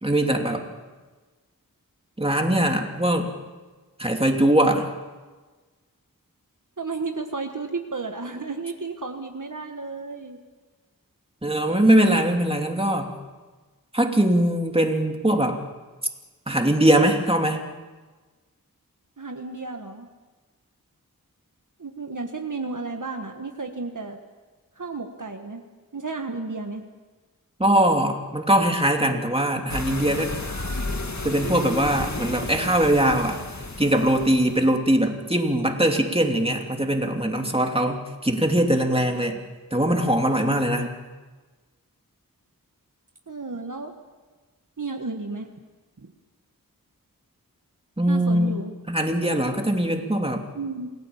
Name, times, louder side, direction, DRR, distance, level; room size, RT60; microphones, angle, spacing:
voice 1, 0.0-0.6 2.2-3.3 4.0-4.9 11.4-13.1 13.9-15.6 16.5-17.6 27.6-30.3 31.2-33.4 33.8-39.4 39.7-40.9 48.0-48.6 48.9-50.4, right 1 dB, 15° right, 2 dB, 2.9 m, -21 dB
voice 2, 6.8-10.4 19.2-20.1 21.8-24.2 24.7-25.6 25.9-26.8 40.5-40.9 43.3-43.9 44.8-45.5 46.0-46.1 48.1-48.7 50.5-50.9, right 3 dB, 60° right, 4 dB, 1.6 m, -33 dB
sound 1, 29.7-34.7, left 2 dB, 50° left, 2.1 m, -32 dB
28.0 x 17.5 x 7.2 m, 1.3 s
wide cardioid pair, 50°, 35 cm